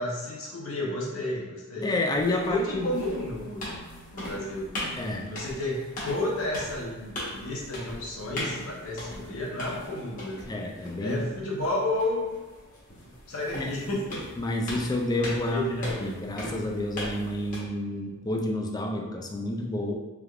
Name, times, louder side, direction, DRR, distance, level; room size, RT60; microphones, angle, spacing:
voice 1, 0.0-1.9 2.3-3.7 4.1-4.7 5.2-10.5 11.0-12.3 13.3-14.2 15.5-16.1, left 1 dB, 65° left, -2 dB, 0.8 m, -31 dB
voice 2, 1.8-2.9 5.0-5.3 10.5-11.2 13.5-14.0 14.4-19.9, left 1 dB, 20° left, 2 dB, 0.3 m, -29 dB
sound 1, 2.1-17.6, left 1 dB, 40° left, 1.1 m, -39 dB
3.4 x 3.2 x 2.3 m, 1.2 s
head